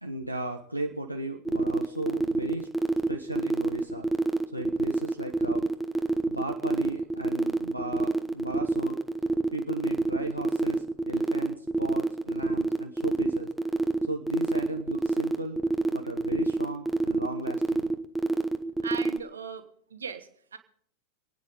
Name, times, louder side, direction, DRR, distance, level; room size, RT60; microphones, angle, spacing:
voice 1, 0.0-2.7 3.1-4.1 4.5-5.7 6.3-9.0 9.5-13.5 14.1-15.6 15.9-17.9, right 1 dB, 90° right, 2 dB, 1.0 m, -36 dB
sound 1, 1.5-19.2, right 2 dB, 5° right, 1.0 m, -27 dB
voice 2, 18.8-20.6, right 6 dB, 70° right, 9 dB, 1.3 m, -38 dB
27.0 x 9.5 x 4.0 m, 0.65 s
figure-of-eight pair, 90°, 0 cm